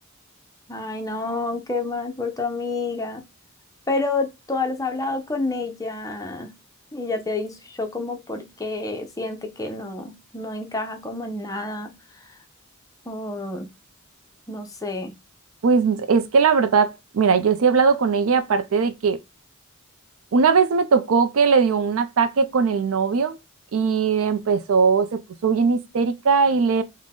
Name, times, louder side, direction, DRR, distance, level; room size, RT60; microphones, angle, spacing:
voice 1, 0.7-3.2 3.9-6.5 6.9-11.9 13.1-13.7 14.5-15.1, left 3 dB, 15° left, 0.6 m, -29 dB
voice 2, 15.6-19.2 20.3-23.4 23.7-26.8, right 5 dB, 70° right, 0.4 m, -19 dB
3.7 x 2.1 x 3.6 m
head